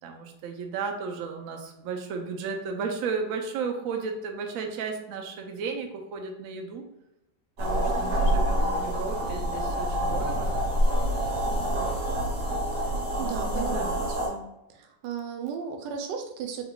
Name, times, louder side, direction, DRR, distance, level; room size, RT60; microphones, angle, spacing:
voice 1, 0.0-6.8 7.6-10.5 11.5-11.9 13.1-14.0, right 5 dB, 70° right, 3 dB, 0.8 m, -34 dB
sound 1, 7.6-14.3, equal, 45° right, 1.2 m, -26 dB
voice 2, 13.2-14.5 14.7-16.6, right 6 dB, 85° right, 4 dB, 1.3 m, -35 dB
3.9 x 3.6 x 2.3 m, 0.87 s
omnidirectional pair, 1.9 m